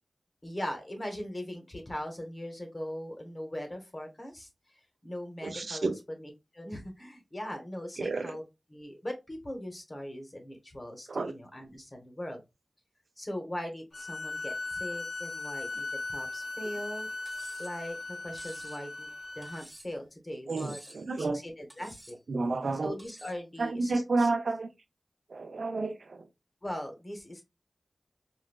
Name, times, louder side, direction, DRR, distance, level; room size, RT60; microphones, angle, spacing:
voice 1, 0.4-4.5 5.0-8.4 8.7-12.4 13.2-17.1 17.6-19.1 19.3-20.8 21.2-22.2 22.8-24.3 26.6-27.4, left 1 dB, 35° left, 1.0 m, -40 dB
voice 2, 5.4-6.0 8.0-8.3 11.1-11.3 20.5-21.4 22.3-23.0 23.6-24.7 25.3-26.2, right 3 dB, 75° right, 0.4 m, -30 dB
sound 1, 13.9-19.6, left 2 dB, 55° left, 0.4 m, -38 dB
Cutlery silverware, 17.2-17.8 18.4-18.8 19.4-20.0 20.6-21.1 21.7-22.2 23.0-23.4, right 1 dB, 10° right, 0.8 m, -51 dB
3.8 x 2.2 x 2.2 m
wide cardioid pair, 60°, 0 cm